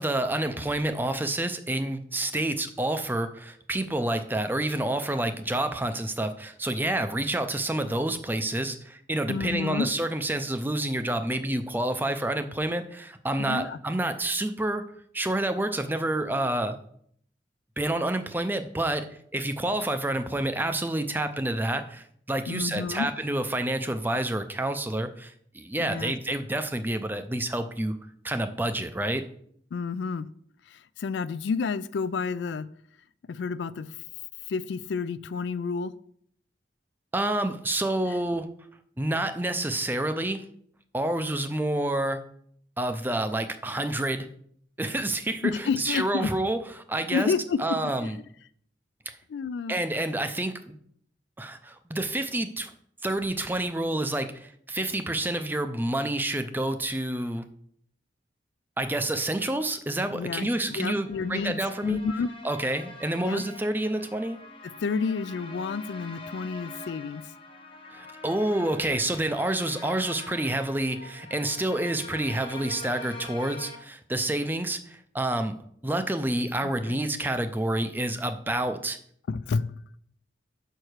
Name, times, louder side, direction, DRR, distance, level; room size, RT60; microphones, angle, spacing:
voice 1, 0.0-14.8 15.1-16.8 17.8-19.1 19.3-27.9 28.2-29.2 37.1-38.5 39.0-40.4 40.9-42.2 42.8-44.3 44.8-45.5 45.8-46.6 46.9-47.3 47.6-48.1 49.1-49.2 49.7-50.8 51.4-52.7 53.0-57.4 58.8-62.0 62.4-64.4 67.9-75.6 75.8-79.0, right 1 dB, 10° right, 8 dB, 0.5 m, -28 dB
voice 2, 9.3-9.9 13.4-13.8 22.5-23.1 25.8-26.1 29.7-30.3 30.7-32.7 33.3-34.0 34.5-35.9 38.1-38.2 45.4-46.3 47.1-48.2 49.3-49.8 60.1-62.3 63.2-63.4 64.6-67.3 76.6-77.0 79.3-79.8, left 5 dB, 70° left, 16 dB, 0.3 m, -30 dB
sound 1, 60.4-73.8, left 2 dB, 30° left, 0.8 m, -44 dB
5.7 x 4.6 x 6.5 m, 0.65 s
head